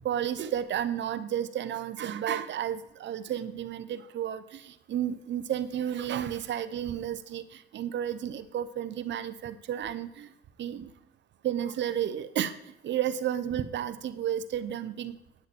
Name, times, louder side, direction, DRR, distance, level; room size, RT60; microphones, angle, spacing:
voice 1, 0.0-10.3 10.6-10.9 11.4-12.5 12.8-15.2, right 10 dB, 65° right, 12 dB, 0.9 m, -32 dB
9.5 x 9.1 x 4.2 m, 0.83 s
cardioid pair, 90°, 20 cm